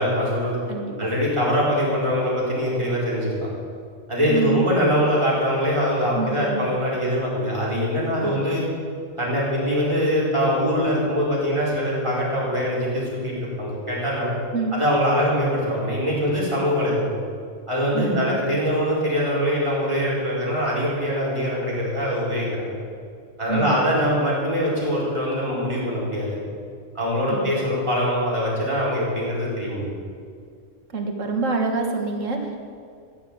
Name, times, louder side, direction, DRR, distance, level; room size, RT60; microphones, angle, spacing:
voice 1, 0.0-0.6 1.0-3.5 4.1-8.6 9.2-14.3 14.7-17.1 17.7-22.8 23.4-26.4 26.9-29.9, equal, 20° right, -7 dB, 4.8 m, -23 dB
voice 2, 4.3-4.7 6.2-6.7 8.2-8.4 14.5-14.8 17.9-18.5 23.5-23.8 27.3-27.5 30.9-32.6, right 3 dB, 75° right, 3 dB, 2.0 m, -26 dB
15.0 x 7.6 x 8.8 m, 2.2 s
omnidirectional pair, 1.4 m